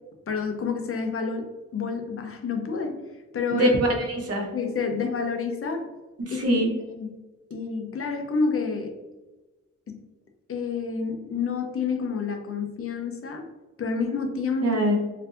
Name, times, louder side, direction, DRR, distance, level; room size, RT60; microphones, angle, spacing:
voice 1, 0.3-3.0 3.3-3.7 4.5-5.9 6.3-6.6 7.0-7.2 7.5-8.9 9.9-10.0 10.5-13.5 13.8-14.8, left 5 dB, 50° left, 4 dB, 0.5 m, -29 dB
voice 2, 3.5-4.5 6.2-6.7 14.6-15.0, right 1 dB, 55° right, 1 dB, 0.7 m, -23 dB
4.3 x 2.6 x 2.4 m, 1.1 s
wide cardioid pair, 175°, 29 cm